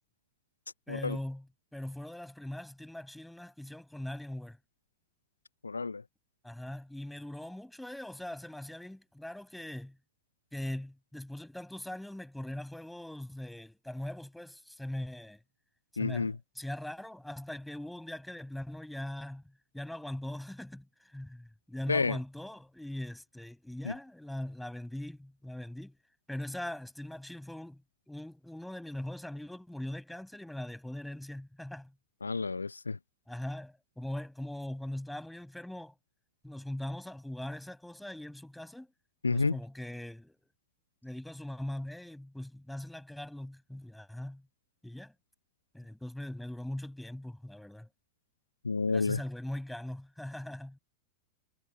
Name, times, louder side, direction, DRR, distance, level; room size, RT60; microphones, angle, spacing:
voice 1, 0.9-1.5 1.7-4.6 6.4-10.0 10.5-15.4 15.9-19.4 19.7-20.9 21.1-26.0 26.3-27.8 28.1-31.9 33.3-35.9 36.4-38.9 39.3-40.4 41.0-44.4 44.8-45.1 45.7-47.9 48.9-50.8, left 1 dB, 5° left, 7.8 m, -41 dB
voice 2, 5.6-6.0 16.0-16.3 21.9-22.2 23.8-23.9 32.2-33.0 39.2-39.6 48.6-49.2, left 4 dB, 80° left, 0.7 m, -30 dB
figure-of-eight pair, 90°, 0 cm